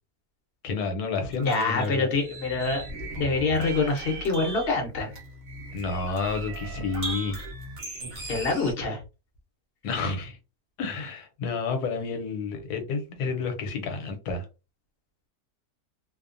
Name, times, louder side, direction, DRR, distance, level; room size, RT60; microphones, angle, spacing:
voice 1, 0.6-2.1 5.7-7.4 9.8-10.4 10.8-14.5, left 4 dB, 70° left, 1.2 m, -30 dB
sound 1, 1.3-8.7, right 2 dB, 40° right, 0.7 m, -38 dB
voice 2, 1.4-2.9 3.2-5.1 8.3-9.0, left 3 dB, 50° left, 0.7 m, -26 dB
2.8 x 2.1 x 2.5 m
omnidirectional pair, 1.8 m